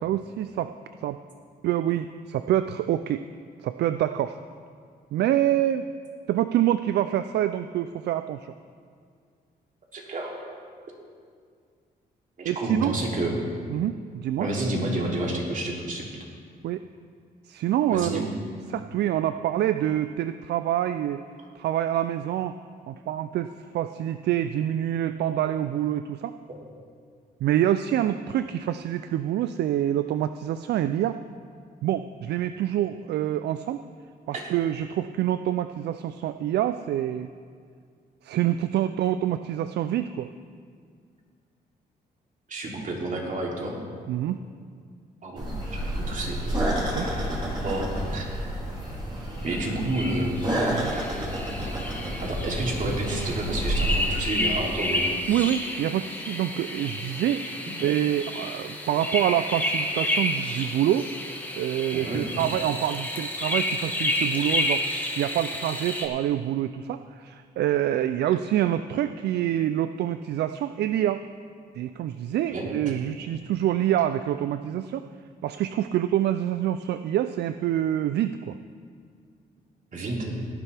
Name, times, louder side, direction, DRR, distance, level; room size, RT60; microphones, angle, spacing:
voice 1, 0.0-0.7 1.0-1.2 1.6-3.2 3.6-4.4 5.1-5.9 6.3-8.5 12.4-12.9 13.7-14.5 16.6-16.8 17.5-18.3 18.7-21.2 21.6-22.6 22.9-26.4 27.4-31.2 31.8-33.8 34.3-37.3 38.2-40.3 44.1-44.4 46.9-47.1 50.7-50.9 55.3-57.4 57.8-61.1 61.6-64.9 65.2-71.2 71.7-75.1 75.4-78.6, right 11 dB, 75° right, 11 dB, 0.4 m, -26 dB
voice 2, 9.9-10.4 12.4-13.4 14.4-16.0 17.9-18.3 34.3-34.5 42.5-43.8 45.2-46.4 47.6-48.6 49.4-50.3 52.2-55.1 61.9-62.2 72.5-72.7 79.9-80.4, right 2 dB, 50° right, -2 dB, 3.0 m, -30 dB
sound 1, 45.4-54.1, right 1 dB, 30° right, 3.8 m, -29 dB
sound 2, 49.4-66.1, left 1 dB, 10° left, 2.0 m, -30 dB
17.5 x 10.5 x 3.4 m, 2.1 s
cardioid pair, 80°, 17 cm